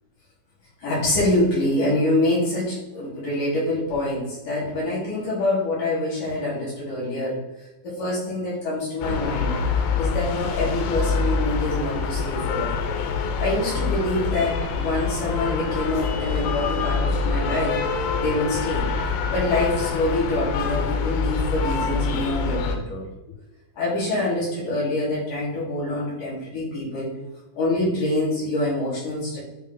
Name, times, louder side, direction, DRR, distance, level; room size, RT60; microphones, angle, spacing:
voice 1, 0.8-7.4 7.8-9.5 10.0-12.8 13.4-17.8 18.2-18.9 19.3-23.0 23.8-27.1 27.5-29.4, left 2 dB, 50° left, -7 dB, 2.9 m, -25 dB
sound 1, 9.0-22.8, left 5 dB, 85° left, 3.4 m, -25 dB
7.9 x 3.6 x 3.8 m, 1.0 s
omnidirectional pair, 5.9 m